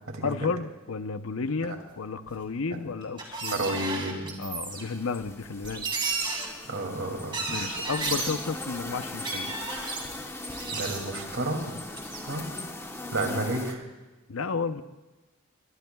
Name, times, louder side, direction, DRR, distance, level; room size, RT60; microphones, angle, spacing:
voice 1, 0.2-3.6 4.4-5.9 7.5-9.5 14.3-14.8, left 4 dB, 75° left, 11 dB, 0.7 m, -32 dB
sound 1, 2.3-2.4 3.0-4.8 5.2-5.3 5.6-6.5 7.3-8.3 9.0-10.1 10.5-11.3 12.0-12.2, right 3 dB, 25° right, 3.0 m, -32 dB
voice 2, 3.5-4.3 6.7-7.4 10.7-11.6 12.3-12.5 13.1-13.8, right 2 dB, 70° right, 2 dB, 2.6 m, -31 dB
sound 2, 4.7-13.7, left 2 dB, 15° left, 1.1 m, -40 dB
23.0 x 22.5 x 2.3 m, 1.2 s
head